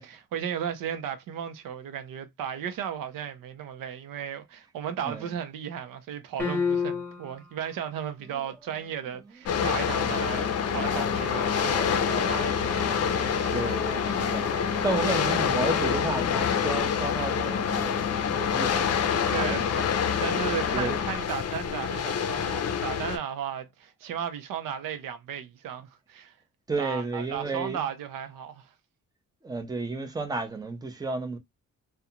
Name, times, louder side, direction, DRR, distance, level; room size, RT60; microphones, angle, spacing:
voice 1, 0.1-12.9 19.3-19.6 20.2-26.3 26.8-28.7, right 8 dB, 85° right, 0.6 m, -35 dB
sound 1, 6.4-7.5, left 5 dB, 5° left, 1.0 m, -28 dB
sound 2, 9.5-23.2, left 7 dB, 50° left, 0.5 m, -26 dB
Wind instrument woodwind instrument, 10.6-15.5, right 7 dB, 50° right, 1.1 m, -41 dB
voice 2, 13.5-19.8 20.7-21.0 26.7-27.8 29.4-31.4, right 3 dB, 10° right, 0.5 m, -32 dB
2.4 x 2.2 x 2.7 m
cardioid pair, 110°, 32 cm